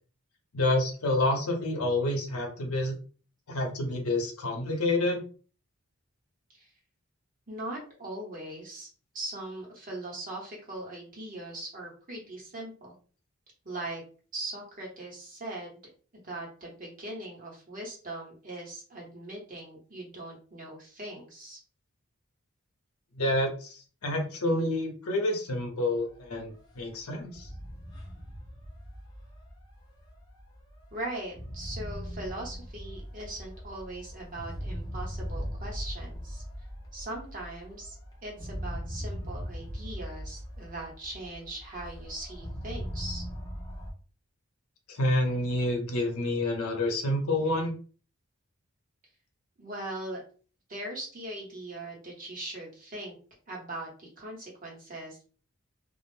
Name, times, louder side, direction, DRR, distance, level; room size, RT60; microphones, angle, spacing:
voice 1, 0.5-3.0 3.5-5.2 23.1-27.5 44.9-47.7, left 1 dB, 85° left, 2 dB, 0.7 m, -28 dB
voice 2, 7.5-8.9 9.1-12.9 13.6-14.0 14.3-15.8 16.2-21.6 30.9-36.4 36.9-37.9 38.2-43.3 49.6-50.2 50.7-53.1 53.5-55.2, right 1 dB, 40° right, -3 dB, 1.1 m, -40 dB
sound 1, 26.0-43.9, equal, 20° left, 0.5 m, -40 dB
2.4 x 2.0 x 3.1 m, 0.39 s
head